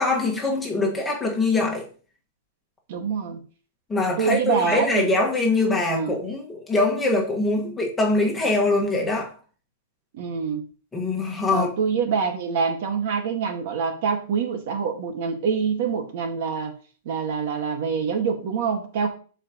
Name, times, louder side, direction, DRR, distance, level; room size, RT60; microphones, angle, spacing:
voice 1, 0.0-1.9 3.9-9.3 10.9-11.7, left 2 dB, 10° left, 1.7 m, -23 dB
voice 2, 2.9-3.4 4.2-5.1 5.8-6.2 10.1-10.7 11.5-16.7 17.0-19.1, right 6 dB, 50° right, 1.7 m, -25 dB
12.5 x 5.0 x 3.0 m
supercardioid pair, 160°, 0 cm